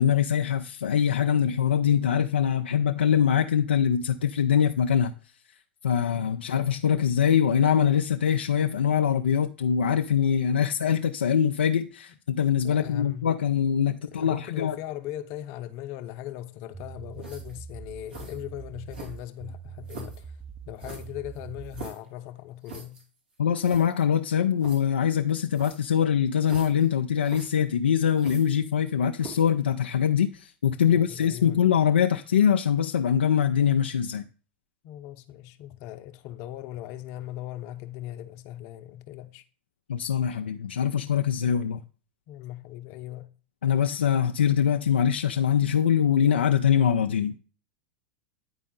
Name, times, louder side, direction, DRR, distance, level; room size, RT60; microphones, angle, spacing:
voice 1, 0.0-5.1 5.8-14.8 23.4-34.3 39.9-41.8 43.6-47.4, left 8 dB, 85° left, 0.4 m, -23 dB
voice 2, 12.6-13.3 14.0-20.4 20.7-23.0 30.9-31.6 34.8-39.4 42.3-43.3, left 13 dB, 55° left, 0.7 m, -39 dB
sound 1, 16.7-21.9, right 7 dB, 10° right, 0.6 m, -43 dB
sound 2, 17.2-17.6 18.1-18.4 18.9-19.4 19.9-20.2 20.8-22.1 22.6-23.0 23.3-23.4 23.6-23.9 24.6-24.8 25.5-25.9 26.4-26.9 27.2-27.5 28.1-28.8 29.2-29.5, right 4 dB, 80° right, 2.8 m, -43 dB
9.5 x 4.3 x 3.8 m
hypercardioid pair, 95°, 6 cm